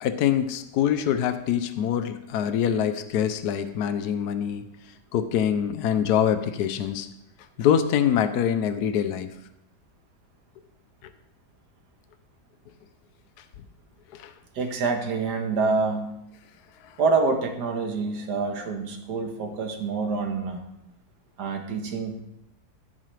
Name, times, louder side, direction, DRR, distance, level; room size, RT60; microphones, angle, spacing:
voice 1, 0.0-4.6 5.1-7.1 7.6-9.3 14.1-14.3, left 9 dB, 80° left, 10 dB, 1.2 m, -24 dB
voice 2, 14.6-16.2 17.0-20.6 21.4-22.2, right 4 dB, 90° right, 4 dB, 1.8 m, -26 dB
14.0 x 7.8 x 3.3 m, 0.85 s
omnidirectional pair, 1.7 m